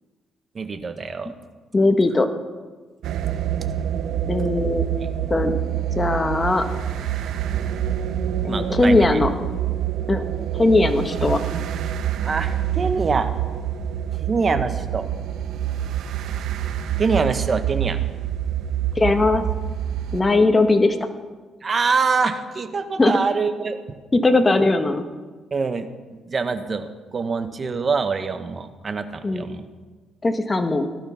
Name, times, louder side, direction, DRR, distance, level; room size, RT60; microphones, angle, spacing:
voice 1, 0.5-1.3 8.5-9.2 12.2-13.3 14.2-15.1 17.0-18.0 21.6-23.8 25.5-25.9 26.2-29.7, right 4 dB, 40° right, 9 dB, 1.4 m, -24 dB
voice 2, 1.7-2.3 4.3-4.8 5.3-5.5 6.0-6.6 8.4-9.3 10.1-10.2 10.6-11.4 18.9-19.4 20.1-21.0 23.0-23.2 24.1-25.0 29.2-29.4 30.2-30.9, left 2 dB, 25° left, 7 dB, 1.5 m, -19 dB
sound 1, 3.0-20.2, right 10 dB, 80° right, 1.1 m, -26 dB
18.0 x 12.0 x 5.9 m, 1.4 s
cardioid pair, 90°, 0 cm